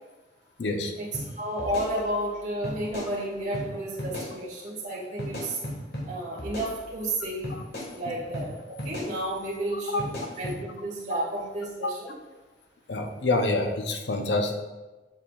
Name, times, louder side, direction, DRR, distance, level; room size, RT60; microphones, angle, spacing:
voice 1, 0.6-0.9 8.0-8.1 9.9-10.0 12.9-14.6, left 2 dB, 75° left, 4 dB, 0.7 m, -26 dB
sound 1, 1.1-1.3 1.6-2.3 2.6-3.1 3.5-3.7 4.0-4.3 5.2-6.1 6.4-7.1 7.4-7.9 8.3-8.5 8.8-9.1 10.0-10.6, left 1 dB, 60° left, 1.6 m, -35 dB
voice 2, 1.4-5.6 6.1-7.6 7.9-10.1 10.4-12.1, right 1 dB, 40° right, -6 dB, 1.8 m, -32 dB
7.3 x 5.5 x 2.4 m, 1.2 s
head